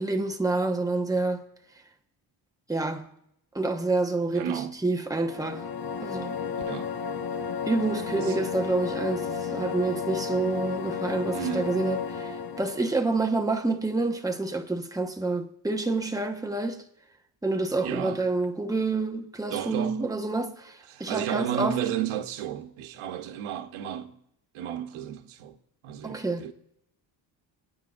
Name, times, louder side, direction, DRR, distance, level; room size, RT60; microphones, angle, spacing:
voice 1, 0.0-1.4 2.7-3.1 3.5-5.6 6.0-6.4 7.7-16.8 17.4-21.8 26.0-26.4, right 3 dB, 5° right, 1.2 m, -28 dB
voice 2, 4.3-4.7 6.7-6.9 8.1-8.4 11.3-11.8 17.8-18.2 19.5-20.1 20.9-24.2 24.5-25.6 25.8-26.5, right 10 dB, 85° right, 1.1 m, -33 dB
sound 1, 5.2-12.9, left 6 dB, 50° left, 1.2 m, -33 dB
26.5 x 9.6 x 2.6 m
cardioid pair, 90°, 48 cm